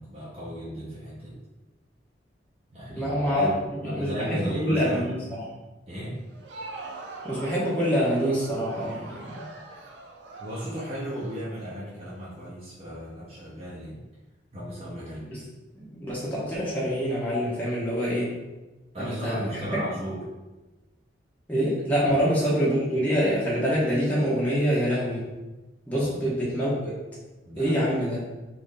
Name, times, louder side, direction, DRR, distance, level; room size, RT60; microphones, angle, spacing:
voice 1, 0.0-1.4 2.7-5.1 5.9-6.2 10.4-14.0 14.5-15.3 18.9-20.2 22.0-22.1 26.0-26.3 27.5-27.8, equal, 35° right, -10 dB, 0.8 m, -36 dB
voice 2, 2.9-5.5 7.2-9.4 15.3-15.4 15.7-18.3 19.0-19.8 21.5-25.3 25.9-26.9 27.6-28.2, equal, 10° left, -8 dB, 0.7 m, -26 dB
Crowd, 6.2-12.1, right 2 dB, 70° right, 0.5 m, -42 dB
3.0 x 2.5 x 3.7 m, 1.1 s
head